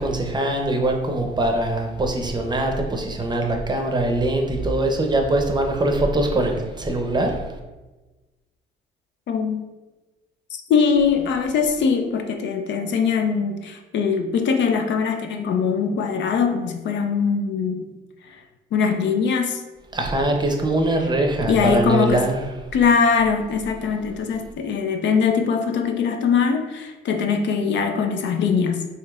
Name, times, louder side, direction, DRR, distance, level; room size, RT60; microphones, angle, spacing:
voice 1, 0.0-7.5 19.9-22.5, right 1 dB, 20° right, 2 dB, 0.6 m, -22 dB
voice 2, 9.3-9.6 10.5-17.9 18.7-19.6 21.5-22.2 22.7-28.9, left 6 dB, 65° left, 6 dB, 0.4 m, -21 dB
4.9 x 2.8 x 2.4 m, 1.2 s
cardioid pair, 90°, 20 cm